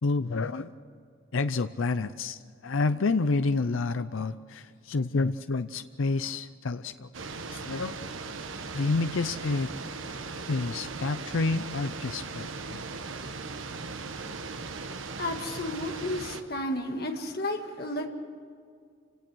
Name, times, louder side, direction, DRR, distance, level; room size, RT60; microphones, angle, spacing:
voice 1, 0.0-0.7 1.3-7.1 7.5-7.9 8.7-9.7 10.5-13.1, left 3 dB, 85° left, 11 dB, 0.6 m, -29 dB
sound 1, 7.1-16.4, right 4 dB, 85° right, 1.2 m, -38 dB
voice 2, 10.2-10.5 15.2-18.1, left 1 dB, 50° left, 3 dB, 2.0 m, -33 dB
28.5 x 17.5 x 6.3 m, 2.2 s
head